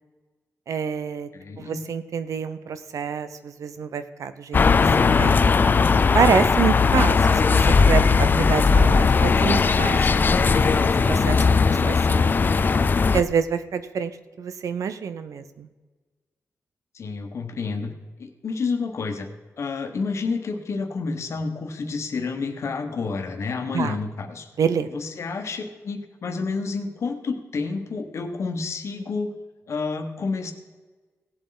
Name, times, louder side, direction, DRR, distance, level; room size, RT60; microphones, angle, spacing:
voice 1, 0.7-1.3 1.6-4.9 5.2-5.3 6.1-12.3 13.1-14.1 14.4-15.7 23.7-24.0 24.6-24.9, right 7 dB, 80° right, 11 dB, 0.8 m, -27 dB
voice 2, 1.3-1.8 16.9-17.9 18.2-19.3 19.6-24.5 24.9-29.3 29.7-30.5, left 4 dB, 55° left, 5 dB, 1.3 m, -29 dB
sound 1, 4.5-13.2, left 5 dB, 35° left, 0.4 m, -18 dB
17.5 x 7.7 x 4.0 m, 1.3 s
wide cardioid pair, 160°, 6 cm